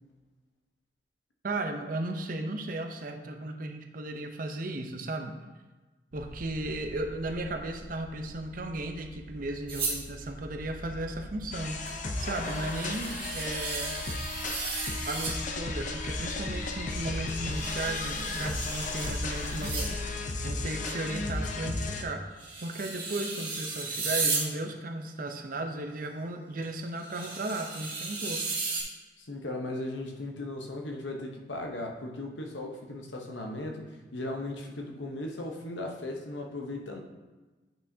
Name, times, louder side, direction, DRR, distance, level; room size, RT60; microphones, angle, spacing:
voice 1, 1.4-5.4 6.1-14.0 15.0-20.0 20.4-28.6, right 2 dB, 50° right, 4 dB, 0.6 m, -35 dB
sound 1, 6.1-20.1, equal, 80° right, 0.9 m, -44 dB
sound 2, 9.7-10.0 11.9-12.0 12.2-15.4 17.3-19.9 20.7-20.8 22.4-24.5 26.6-26.7 27.0-28.8, right 4 dB, 30° right, 1.8 m, -35 dB
sound 3, 11.5-22.0, left 3 dB, 45° left, 0.6 m, -34 dB
voice 2, 29.2-37.0, left 2 dB, 80° left, 2 dB, 0.9 m, -37 dB
8.7 x 5.8 x 2.7 m, 1.2 s
head